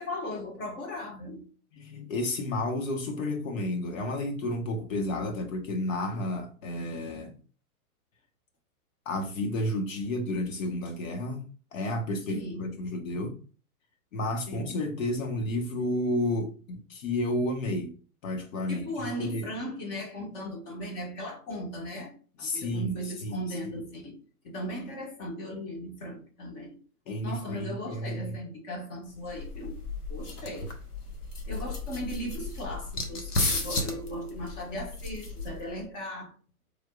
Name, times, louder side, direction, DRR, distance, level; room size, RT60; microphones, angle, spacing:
voice 1, 0.0-1.5 12.3-12.8 14.5-14.8 18.7-24.2 24.4-26.8 27.2-29.8 30.1-30.7 31.5-36.3, equal, 35° left, 1.7 m, -37 dB
voice 2, 1.7-7.3 9.0-11.4 11.7-13.3 14.1-17.9 18.2-18.8 19.2-19.5 22.4-22.9 23.2-23.4 27.1-28.4, left 1 dB, 60° left, 1.4 m, -31 dB
sound 1, 29.1-35.8, left 2 dB, 85° left, 1.2 m, -34 dB
4.5 x 3.7 x 2.4 m
hypercardioid pair, 115°, 44 cm